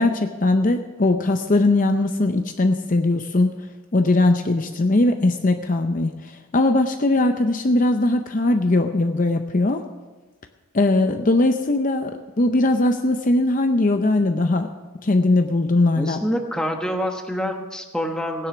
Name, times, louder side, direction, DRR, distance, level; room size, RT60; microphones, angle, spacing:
voice 1, 0.0-3.6 3.9-9.8 10.7-14.7 15.0-16.2, left 2 dB, 40° left, 6 dB, 0.6 m, -20 dB
voice 2, 15.9-18.5, equal, 5° left, 3 dB, 1.1 m, -26 dB
17.0 x 9.9 x 6.2 m, 1.2 s
head